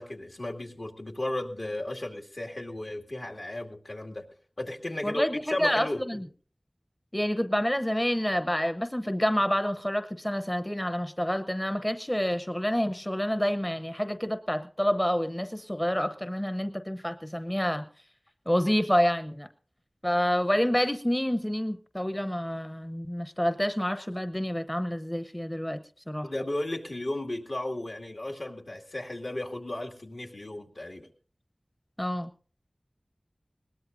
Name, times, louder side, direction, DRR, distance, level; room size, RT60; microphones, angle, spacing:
voice 1, 0.0-4.3 4.6-6.0 26.2-31.1, left 1 dB, 65° left, 1 dB, 2.3 m, -34 dB
voice 2, 5.0-6.2 7.1-17.8 18.5-19.5 20.0-26.3 32.0-32.3, equal, 15° left, 10 dB, 0.8 m, -28 dB
21.0 x 19.0 x 2.6 m, 0.41 s
wide cardioid pair, 55°, 0 cm